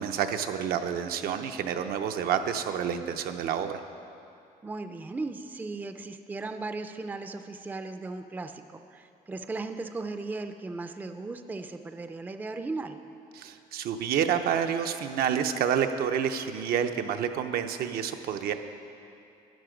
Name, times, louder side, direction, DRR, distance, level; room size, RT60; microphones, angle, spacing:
voice 1, 0.0-3.8 13.3-18.5, right 8 dB, 75° right, 7 dB, 0.7 m, -29 dB
voice 2, 4.6-13.0, right 3 dB, 10° right, 8 dB, 0.4 m, -37 dB
12.5 x 9.9 x 5.1 m, 2.6 s
cardioid pair, 140°, 16 cm